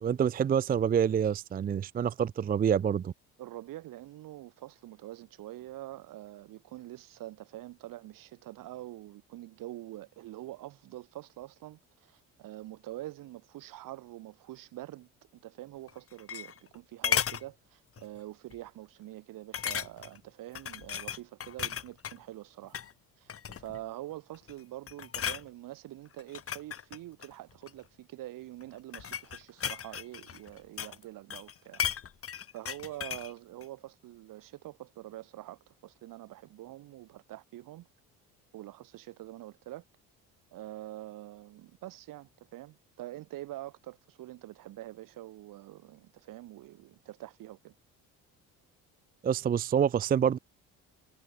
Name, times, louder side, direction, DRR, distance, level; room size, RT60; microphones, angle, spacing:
voice 1, 0.0-3.1 49.2-50.4, right 8 dB, 25° right, 0.4 m, -27 dB
voice 2, 3.4-22.8 23.2-31.9 32.5-37.9 38.5-39.8 40.5-47.7, right 15 dB, 75° right, 4.8 m, -45 dB
sound 1, 15.9-16.7 17.0-17.4 18.0-18.2 18.5-18.6 19.5-20.2 20.5-22.2 22.6-22.9 23.3-23.8 24.3-24.6 24.9-25.4 26.2-27.8 28.6-31.0 31.3-33.3 33.6-33.7, left 8 dB, 40° left, 2.4 m, -35 dB
cardioid pair, 95°, 33 cm